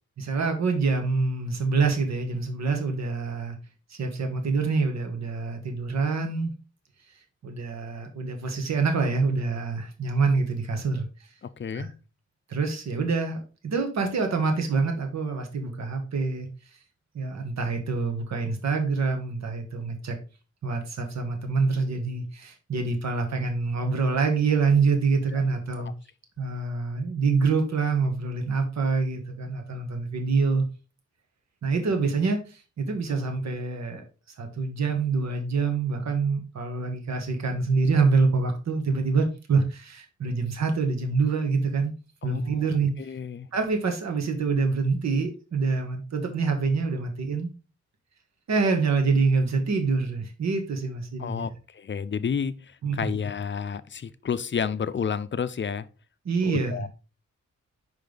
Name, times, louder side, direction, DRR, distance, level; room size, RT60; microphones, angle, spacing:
voice 1, 0.2-3.6 3.9-6.5 7.4-11.3 11.7-11.9 12.5-16.5 17.1-20.2 20.6-25.9 26.4-30.6 31.6-34.0 34.4-41.9 42.2-42.9 43.5-47.5 48.5-51.5 52.8-53.1 56.2-56.7, right 4 dB, 65° right, 1.3 m, -26 dB
voice 2, 11.4-11.9 25.3-25.4 42.2-42.7 43.0-43.5 51.2-55.9 56.4-56.9, left 7 dB, 40° left, 0.5 m, -31 dB
5.5 x 5.2 x 3.8 m
wide cardioid pair, 100°, 29 cm